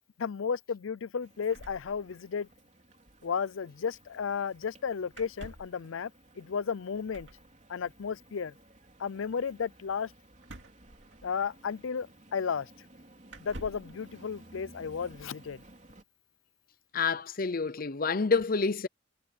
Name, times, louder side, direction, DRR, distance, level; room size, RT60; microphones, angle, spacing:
voice 1, 0.2-2.5 3.2-6.1 6.4-7.3 7.7-8.5 9.0-10.1 11.2-12.7 13.4-15.6, left 6 dB, 85° left, 0.5 m, -33 dB
sound 1, 1.2-16.0, right 1 dB, 35° right, 3.4 m, -57 dB
sound 2, 1.5-2.6 2.8-2.9 3.1-3.3 5.1-5.8 7.1-7.5 10.4-11.6 12.5-12.6 13.3-14.0, right 1 dB, 65° right, 2.6 m, -48 dB
voice 2, 16.9-18.9, left 4 dB, 45° left, 0.7 m, -28 dB
head